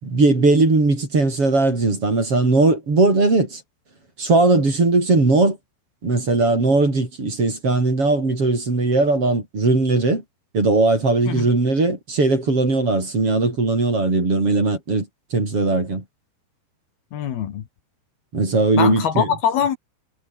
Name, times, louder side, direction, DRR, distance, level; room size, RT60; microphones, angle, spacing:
voice 1, 0.0-3.6 4.2-5.6 6.0-10.2 10.5-16.0 18.3-19.3, right 3 dB, 30° right, 6.8 m, -19 dB
voice 2, 17.1-17.6 18.8-19.8, left 8 dB, 65° left, 3.6 m, -22 dB
omnidirectional pair, 5.1 m